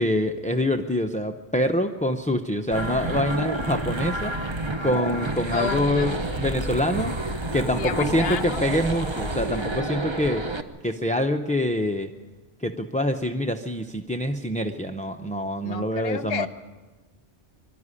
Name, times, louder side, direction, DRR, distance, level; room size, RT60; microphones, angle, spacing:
voice 1, 0.0-4.3 4.8-7.1 7.5-10.5 10.8-12.1 12.6-16.5, left 1 dB, 10° left, 6 dB, 0.5 m, -25 dB
sound 1, 2.7-10.6, right 2 dB, 25° right, 0.9 m, -29 dB
voice 2, 5.5-6.1 7.8-8.7 15.6-16.5, left 6 dB, 60° left, 13 dB, 1.1 m, -30 dB
23.5 x 12.5 x 9.8 m, 1.3 s
omnidirectional pair, 1.2 m